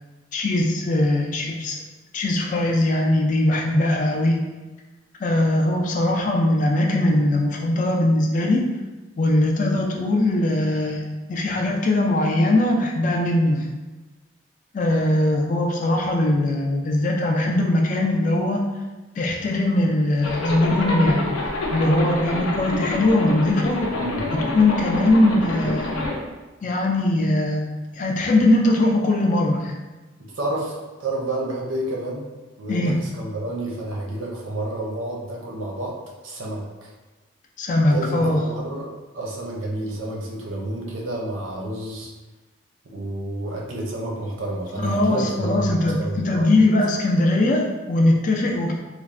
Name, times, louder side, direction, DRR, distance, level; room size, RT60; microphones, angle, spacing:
voice 1, 0.3-1.8 2.1-4.4 5.2-8.6 9.2-11.0 11.3-13.6 14.7-18.6 19.2-21.3 21.7-23.8 24.3-25.9 26.6-27.6 27.9-29.8 32.7-33.0 37.6-38.4 44.8-48.7, left 1 dB, 40° left, 0 dB, 0.3 m, -20 dB
Zipper (clothing), 20.2-26.2, left 2 dB, 90° left, 0.6 m, -27 dB
voice 2, 30.2-32.3 32.6-36.0 36.2-36.9 37.9-42.1 42.8-46.5, right 1 dB, 75° right, -2 dB, 0.6 m, -30 dB
3.1 x 2.0 x 2.5 m, 1.2 s
head